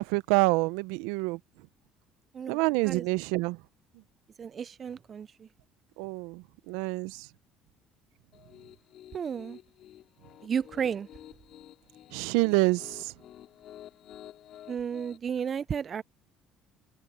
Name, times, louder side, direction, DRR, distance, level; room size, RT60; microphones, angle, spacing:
voice 1, 0.0-1.4 2.5-3.6 6.0-7.3 12.1-13.1, right 24 dB, 80° right, 0.8 m, -27 dB
voice 2, 4.4-5.5 9.1-9.6 10.4-11.1 14.7-16.0, right 7 dB, 45° right, 0.5 m, -33 dB
Piano, 8.3-15.2, left 11 dB, 60° left, 3.4 m, -51 dB
hypercardioid pair, 65°, 0 cm